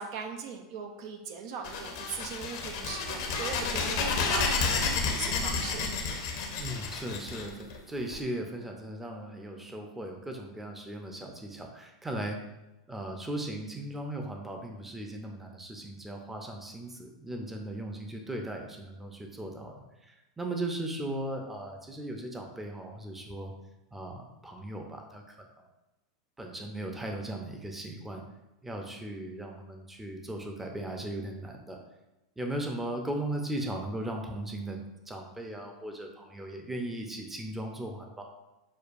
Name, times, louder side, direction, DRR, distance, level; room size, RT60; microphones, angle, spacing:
voice 1, 0.0-5.9, right 5 dB, 60° right, 4 dB, 0.5 m, -39 dB
fpphone-rollpast, 1.6-8.1, left 4 dB, 65° left, 0.8 m, -31 dB
voice 2, 6.6-12.4 12.9-23.5 23.9-25.7 26.4-28.2 28.6-31.8 32.4-34.8 35.1-38.3, right 1 dB, 10° right, 2 dB, 0.6 m, -37 dB
6.4 x 2.3 x 2.5 m, 0.99 s
hypercardioid pair, 95°, 2 cm